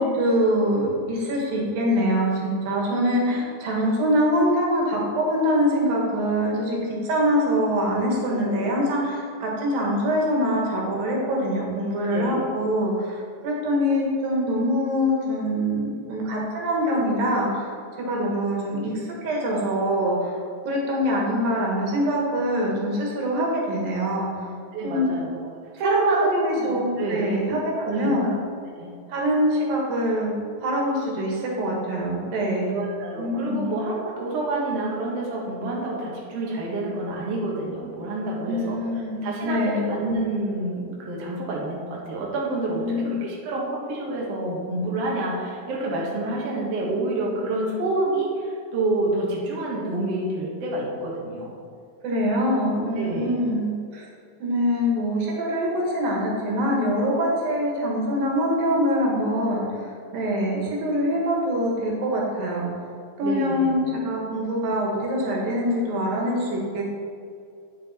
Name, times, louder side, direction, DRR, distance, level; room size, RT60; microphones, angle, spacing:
voice 1, 0.0-6.8 7.0-17.7 18.1-20.4 20.7-24.3 24.8-25.1 25.7-28.3 29.1-30.3 30.6-32.8 33.2-33.7 38.5-39.9 42.8-43.2 52.0-54.1 54.4-62.7 63.2-67.0, equal, 85° right, -2 dB, 3.4 m, -24 dB
voice 2, 8.3-8.7 12.1-12.4 24.7-25.3 25.8-26.3 26.6-27.4 27.8-28.4 28.8-28.9 32.7-38.8 39.2-51.5 53.0-53.3 63.2-63.7, right 2 dB, 55° right, -4 dB, 2.3 m, -28 dB
9.3 x 7.5 x 4.3 m, 2.4 s
omnidirectional pair, 4.0 m